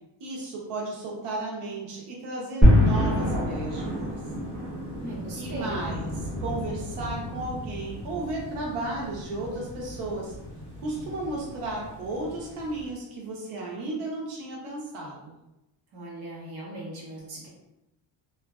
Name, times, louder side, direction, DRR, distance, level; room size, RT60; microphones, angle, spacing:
voice 1, 0.2-4.1 5.3-6.1 6.4-10.3 10.8-15.3, right 2 dB, 85° right, -3 dB, 0.8 m, -34 dB
sound 1, 2.6-12.9, left 1 dB, 5° right, 1.5 m, -28 dB
voice 2, 5.0-5.8 15.9-17.5, right 1 dB, 50° right, -5 dB, 0.9 m, -38 dB
2.9 x 2.4 x 2.3 m, 0.93 s
cardioid pair, 165°, 49 cm